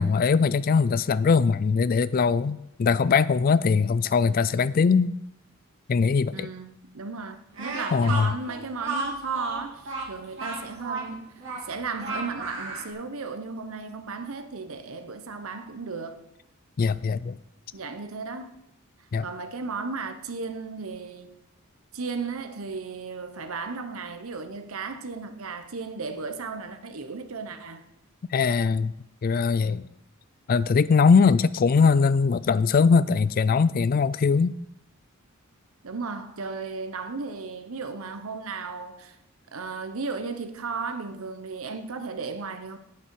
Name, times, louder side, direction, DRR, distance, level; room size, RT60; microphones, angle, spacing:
voice 1, 0.0-5.1 5.9-6.5 7.9-8.4 16.8-17.4 19.1-19.3 28.3-28.9 29.2-29.8 30.5-34.6, left 5 dB, 40° left, 0.3 m, -21 dB
voice 2, 6.3-11.3 11.6-16.3 17.7-18.5 19.2-21.4 21.9-27.8 35.8-39.2 39.5-42.8, right 4 dB, 80° right, 0.9 m, -35 dB
Speech, 7.5-12.9, right 3 dB, 60° right, 2.7 m, -33 dB
8.6 x 8.5 x 4.6 m
head